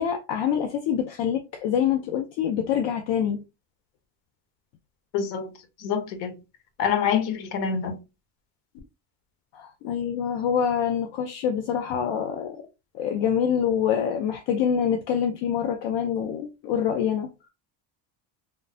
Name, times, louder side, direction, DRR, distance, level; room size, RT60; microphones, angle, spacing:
voice 1, 0.0-3.4 9.5-12.7 12.9-17.3, left 8 dB, 60° left, 0.6 m, -26 dB
voice 2, 5.1-5.5 5.8-6.3 6.8-8.0, left 7 dB, 80° left, 0.9 m, -26 dB
3.1 x 2.1 x 2.6 m
cardioid pair, 130°, 49 cm